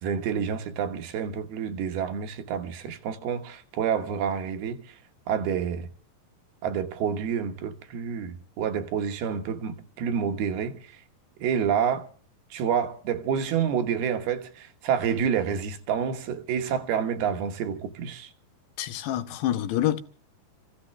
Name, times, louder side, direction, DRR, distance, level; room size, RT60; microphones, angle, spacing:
voice 1, 0.0-4.8 5.3-5.9 6.6-10.8 11.4-12.1 12.5-18.3, right 7 dB, 70° right, 3.1 m, -28 dB
voice 2, 18.8-20.0, left 12 dB, 85° left, 3.3 m, -27 dB
28.0 x 15.5 x 3.3 m
omnidirectional pair, 4.8 m